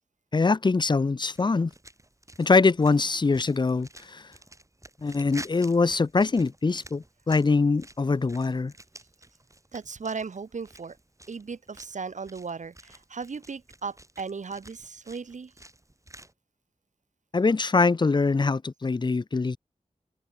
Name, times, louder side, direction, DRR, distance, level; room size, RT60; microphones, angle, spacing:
voice 1, 0.3-1.7 2.4-4.3 5.0-8.7 17.3-19.6, left 4 dB, 35° left, 0.5 m, -23 dB
sound 1, 1.3-16.3, right 1 dB, 25° right, 3.7 m, -50 dB
voice 2, 9.7-11.0 11.3-15.5, right 5 dB, 70° right, 0.8 m, -36 dB
wide cardioid pair, 65°, 13 cm